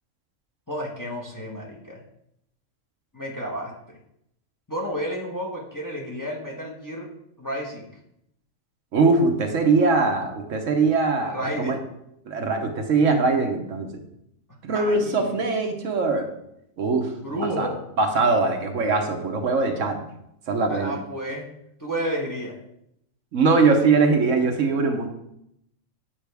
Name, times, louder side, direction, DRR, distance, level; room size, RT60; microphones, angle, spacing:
voice 1, 0.7-2.0 3.1-4.0 4.7-7.1 7.4-7.9 11.2-11.8 14.7-15.4 17.2-17.8 20.7-21.5 21.8-22.6, equal, 15° left, -3 dB, 1.2 m, -31 dB
voice 2, 8.9-11.8 12.3-14.0 14.6-16.3 16.8-17.7 18.0-20.0 20.5-20.9 23.3-25.1, right 4 dB, 70° right, 4 dB, 1.2 m, -22 dB
8.9 x 5.3 x 3.4 m, 0.78 s
omnidirectional pair, 1.4 m